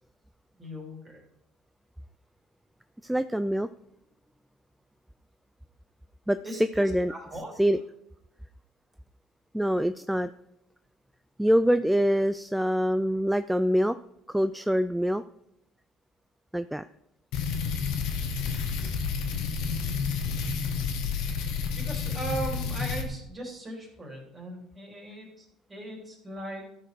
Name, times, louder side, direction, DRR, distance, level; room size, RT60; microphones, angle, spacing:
voice 1, 0.6-1.2 6.4-7.5 21.8-26.6, right 1 dB, 25° right, -1 dB, 3.4 m, -39 dB
voice 2, 3.0-3.7 6.3-7.1 7.6-7.8 9.5-10.3 11.4-14.0 14.3-15.2 16.5-16.8, equal, 5° right, 12 dB, 0.3 m, -25 dB
sound 1, 17.3-23.1, left 5 dB, 70° left, 1.3 m, -30 dB
13.0 x 4.7 x 4.6 m, 0.79 s
hypercardioid pair, 75°, 0 cm